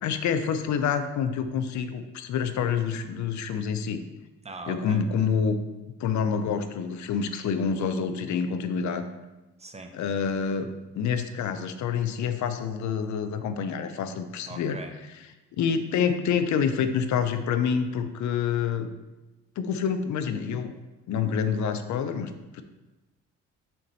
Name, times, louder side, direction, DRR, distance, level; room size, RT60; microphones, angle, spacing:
voice 1, 0.0-4.0 4.7-5.6 6.0-9.1 9.9-14.8 15.6-18.9 19.6-20.7 21.1-22.6, left 6 dB, 70° left, 9 dB, 0.6 m, -27 dB
voice 2, 4.4-5.1 9.6-9.9 14.5-14.9, right 3 dB, 20° right, 4 dB, 0.7 m, -40 dB
5.8 x 4.2 x 4.0 m, 1.1 s
cardioid pair, 90°, 30 cm